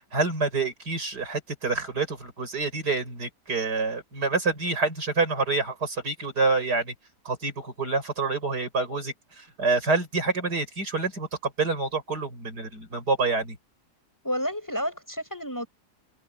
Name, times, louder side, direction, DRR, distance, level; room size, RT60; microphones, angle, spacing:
voice 1, 0.1-6.9 7.2-13.6, right 3 dB, 80° right, 6.1 m, -27 dB
voice 2, 14.2-15.7, equal, 10° left, 6.7 m, -30 dB
omnidirectional pair, 1.7 m